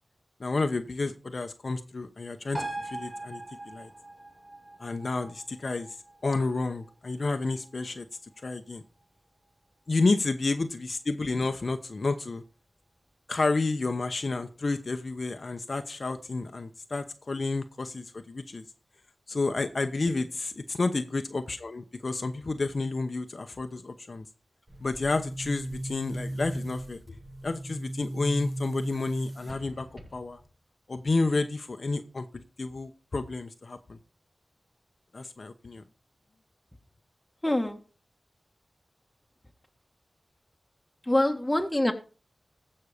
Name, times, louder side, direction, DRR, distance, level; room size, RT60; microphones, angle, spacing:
voice 1, 0.4-3.9 4.8-6.0 6.2-8.1 8.4-8.8 9.9-12.4 13.3-18.6 19.3-24.3 24.8-27.2 27.4-30.4 30.9-34.0 35.1-35.8, left 3 dB, 60° left, 7 dB, 0.9 m, -30 dB
sound 1, 2.5-9.5 9.9-10.0, right 2 dB, 5° right, 4.0 m, -42 dB
Boom, 24.7-30.5, right 1 dB, 45° right, 6.7 m, -37 dB
voice 2, 37.4-37.8 41.1-41.9, left 1 dB, 10° left, 4 dB, 1.7 m, -25 dB
15.0 x 5.6 x 5.0 m, 0.36 s
wide cardioid pair, 60°, 0 cm